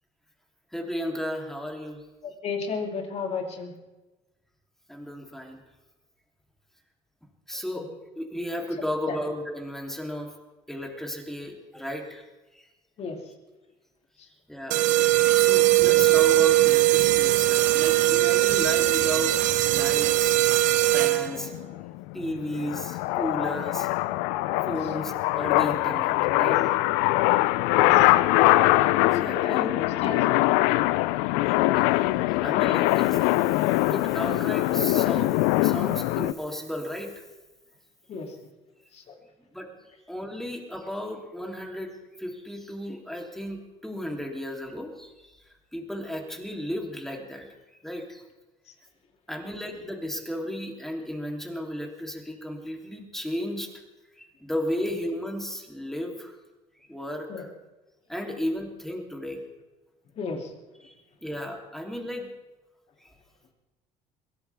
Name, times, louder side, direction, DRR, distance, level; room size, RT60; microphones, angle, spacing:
voice 1, 0.7-2.0 4.9-5.6 7.5-7.9 8.1-10.3 10.7-12.2 12.5-12.6 14.5-14.9 15.3-19.3 19.6-20.4 20.9-21.5 22.1-23.9 24.6-26.7 27.0-27.1 29.0-29.7 32.3-33.2 33.9-37.2 39.5-39.7 40.1-45.4 45.7-47.5 47.8-48.2 49.3-53.7 54.2-56.4 56.9-57.5 58.1-59.4 60.8-60.9 61.2-62.3 63.0-63.1, equal, 5° left, 1 dB, 3.3 m, -34 dB
voice 2, 2.2-3.7 7.7-7.9 9.1-9.2 13.0-13.2 14.2-14.3 24.8-24.9 27.7-28.1 29.1-30.3 38.1-38.4 38.9-39.2 48.7-48.8 57.3-57.5 60.2-60.5, left 5 dB, 50° left, 3 dB, 2.9 m, -33 dB
sound 1, 14.7-21.5, right 17 dB, 70° right, 1.0 m, -20 dB
sound 2, 21.0-36.3, left 18 dB, 85° left, 0.5 m, -23 dB
22.5 x 16.5 x 3.6 m, 1.1 s
supercardioid pair, 90°, 14 cm